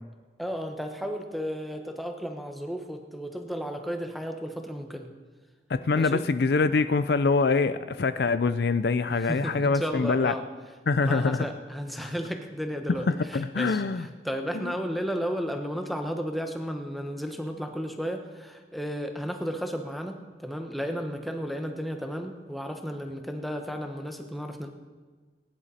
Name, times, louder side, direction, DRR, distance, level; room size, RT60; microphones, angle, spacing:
voice 1, 0.4-5.1 5.9-6.2 9.2-10.4 11.0-24.7, equal, ahead, 4 dB, 1.0 m, -33 dB
voice 2, 5.7-10.3 10.9-11.5 12.0-12.1 13.1-14.1 14.5-14.7, left 4 dB, 55° left, 13 dB, 0.4 m, -24 dB
20.0 x 11.0 x 4.2 m, 1.4 s
head